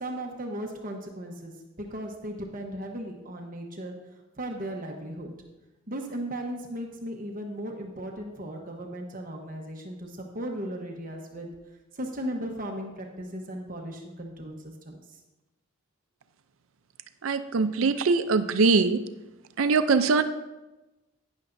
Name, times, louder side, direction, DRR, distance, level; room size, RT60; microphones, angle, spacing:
voice 1, 0.0-3.9 4.4-5.3 5.9-11.5 11.9-15.0, right 1 dB, 40° right, 2 dB, 1.1 m, -36 dB
voice 2, 17.2-19.0 19.6-20.2, right 4 dB, 85° right, 10 dB, 0.5 m, -22 dB
11.5 x 9.8 x 2.6 m, 1.0 s
head